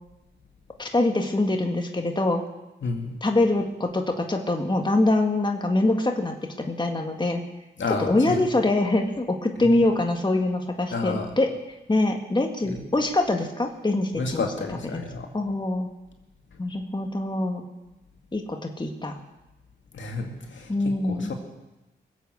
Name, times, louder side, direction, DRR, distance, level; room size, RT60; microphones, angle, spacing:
voice 1, 0.8-2.4 3.2-6.3 6.7-7.4 8.0-11.5 11.9-14.5 14.9-15.0 15.3-15.9 16.6-17.6 18.3-19.2 20.7-21.3, left 2 dB, 20° left, 3 dB, 1.9 m, -24 dB
voice 2, 2.8-3.1 7.8-8.5 10.9-11.4 12.6-12.8 14.1-15.3 19.9-21.3, left 3 dB, 70° left, 2 dB, 2.3 m, -31 dB
21.0 x 8.2 x 6.7 m, 1.0 s
cardioid pair, 55°, 20 cm